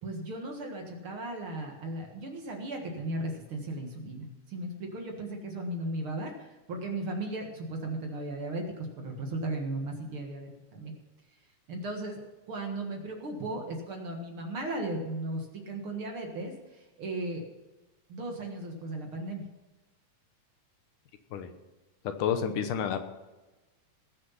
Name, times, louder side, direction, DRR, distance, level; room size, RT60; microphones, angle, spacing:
voice 1, 0.0-10.9 11.7-12.2 12.5-17.5 18.1-19.4, right 2 dB, 50° right, 2 dB, 2.1 m, -36 dB
voice 2, 22.0-23.0, left 8 dB, 80° left, 8 dB, 2.5 m, -29 dB
20.0 x 6.6 x 5.7 m, 1.1 s
omnidirectional pair, 3.6 m